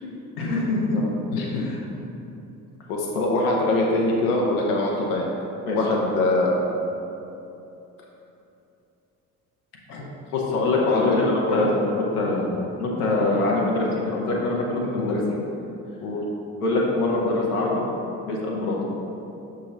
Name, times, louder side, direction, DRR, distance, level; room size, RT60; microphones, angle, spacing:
voice 1, 0.0-1.0 1.5-1.8 3.1-3.3 5.6-5.8 9.9-10.0 10.3-12.5 12.8-15.2 16.6-17.8 18.2-18.8, left 2 dB, 80° left, -3 dB, 1.0 m, -24 dB
voice 2, 0.9-2.0 2.9-5.3 5.7-6.6 10.8-11.2 11.5-11.6 15.0-15.2 16.0-16.2, left 2 dB, 65° left, -1 dB, 0.8 m, -24 dB
6.3 x 3.6 x 4.3 m, 2.9 s
figure-of-eight pair, 50°, 45 cm